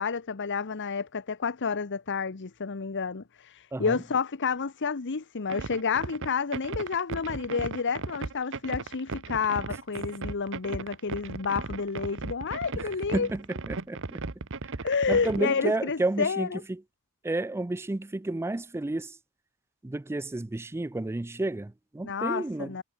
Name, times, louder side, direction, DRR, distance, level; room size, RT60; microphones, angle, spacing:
voice 1, 0.0-13.3 14.8-16.6 22.0-22.8, left 5 dB, 55° left, 0.9 m, -30 dB
voice 2, 3.7-4.0 9.7-9.8 12.8-14.2 14.6-14.7 15.1-16.8 17.2-19.2 19.8-22.8, right 2 dB, 10° right, 0.4 m, -31 dB
sound 1, 5.5-15.5, right 3 dB, 65° right, 1.3 m, -36 dB
head